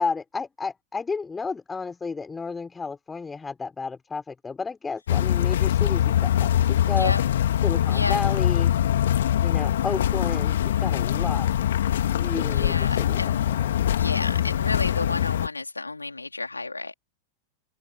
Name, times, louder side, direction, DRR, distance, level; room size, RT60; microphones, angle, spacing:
voice 1, 0.0-7.1 7.6-8.7 9.4-11.7 12.1-13.2 13.5-13.7, left 4 dB, 15° left, 3.8 m, -32 dB
sound 1, 5.1-15.5, left 11 dB, 60° left, 2.8 m, -23 dB
voice 2, 12.5-13.4 14.0-16.9, left 3 dB, 80° left, 3.3 m, -31 dB
figure-of-eight pair, 90°, 0 cm